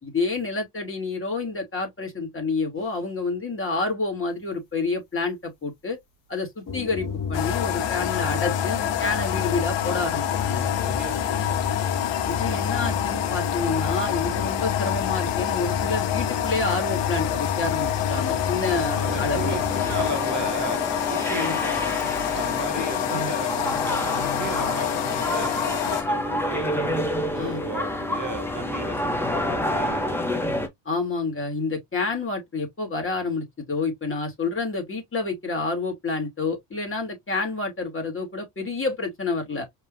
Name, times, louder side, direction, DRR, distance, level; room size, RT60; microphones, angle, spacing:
voice 1, 0.0-6.0 6.3-10.7 12.3-19.6 21.3-21.6 23.1-23.3 27.4-27.6 30.8-39.7, left 3 dB, 25° left, 3.1 m, -29 dB
sound 1, 6.7-20.3, left 5 dB, 40° left, 2.0 m, -30 dB
sound 2, 7.3-26.0, left 12 dB, 65° left, 1.2 m, -28 dB
voice 2, 10.9-11.6 18.7-21.9 22.3-27.1 27.3-30.2, right 5 dB, 40° right, 1.4 m, -35 dB
sound 3, 19.0-30.7, left 1 dB, 5° left, 1.6 m, -28 dB
5.2 x 3.8 x 2.7 m
supercardioid pair, 75°, 47 cm